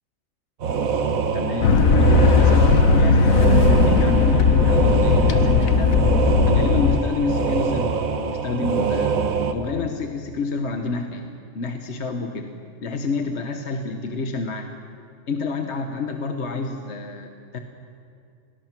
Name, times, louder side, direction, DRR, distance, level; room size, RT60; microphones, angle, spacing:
sound 1, 0.6-9.5, right 5 dB, 85° right, 1.6 m, -24 dB
voice 1, 1.3-5.9 6.5-9.2 9.5-11.3 11.5-12.5 12.8-14.7 15.3-17.6, left 3 dB, 55° left, 5 dB, 1.4 m, -28 dB
sound 2, 1.6-7.0, left 4 dB, 80° left, 1.4 m, -17 dB
28.0 x 19.5 x 6.0 m, 2.4 s
omnidirectional pair, 1.4 m